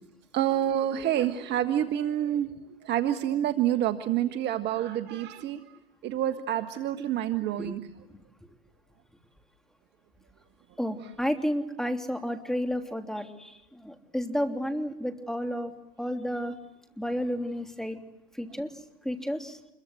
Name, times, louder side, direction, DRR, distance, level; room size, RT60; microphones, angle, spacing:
voice 1, 0.3-2.5 2.8-5.6 6.0-7.8, right 11 dB, 35° right, 1.5 m, -27 dB
voice 2, 10.8-15.7 16.0-16.5 17.0-18.0 18.4-18.7 19.0-19.6, equal, ahead, 3.2 m, -31 dB
28.0 x 23.0 x 7.9 m
hypercardioid pair, 100°, 29 cm